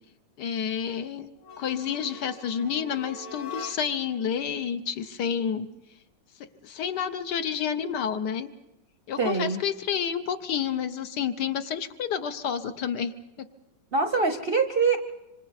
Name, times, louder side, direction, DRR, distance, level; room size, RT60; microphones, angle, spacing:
voice 1, 0.4-1.3 1.6-5.7 6.4-8.5 9.1-13.5, left 8 dB, 70° left, 9 dB, 1.4 m, -30 dB
sound 1, 1.4-4.1, left 4 dB, 90° left, 4.3 m, -42 dB
voice 2, 9.2-9.6 13.9-15.0, right 4 dB, 45° right, 7 dB, 0.8 m, -24 dB
26.0 x 25.5 x 4.2 m, 0.94 s
omnidirectional pair, 1.9 m